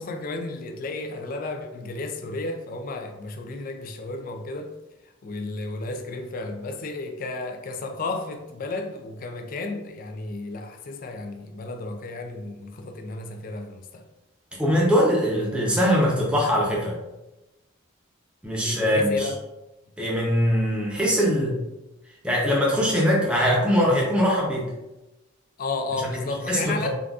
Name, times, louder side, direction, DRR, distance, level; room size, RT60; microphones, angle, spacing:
voice 1, 0.0-4.7 5.2-14.1 18.6-19.4 25.6-26.9, left 3 dB, 45° left, 0.3 m, -33 dB
voice 2, 14.6-17.0 18.4-19.3 20.0-21.6 22.2-24.7 26.0-26.1 26.5-26.9, equal, 5° right, 0.6 m, -22 dB
3.8 x 2.4 x 2.3 m
head